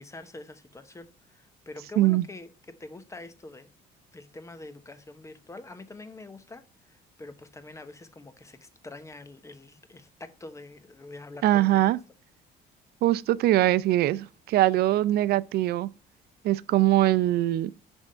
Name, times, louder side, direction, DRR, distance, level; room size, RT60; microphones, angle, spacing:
voice 1, 0.0-3.7 4.1-6.6 6.9-11.8, left 2 dB, 15° left, 0.9 m, -45 dB
voice 2, 11.4-12.0 13.0-15.9 16.4-17.7, right 15 dB, 70° right, 0.5 m, -22 dB
10.5 x 3.6 x 5.6 m
cardioid pair, 110°, 17 cm